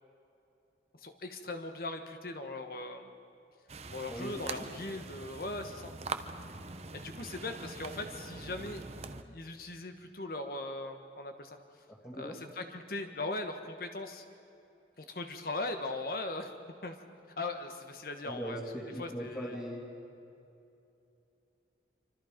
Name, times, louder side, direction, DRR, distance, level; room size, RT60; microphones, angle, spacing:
voice 1, 0.9-3.1 3.9-5.9 6.9-8.8 9.3-11.6 12.2-14.2 15.0-16.5 16.8-17.0 17.4-18.6 19.0-19.6, left 2 dB, 50° left, 6 dB, 1.3 m, -39 dB
sound 1, 3.7-9.2, right 3 dB, 35° right, 0.9 m, -43 dB
voice 2, 4.1-4.7 12.0-12.4 18.2-19.8, equal, 15° left, -7 dB, 2.7 m, -40 dB
27.0 x 25.0 x 5.2 m, 2.8 s
head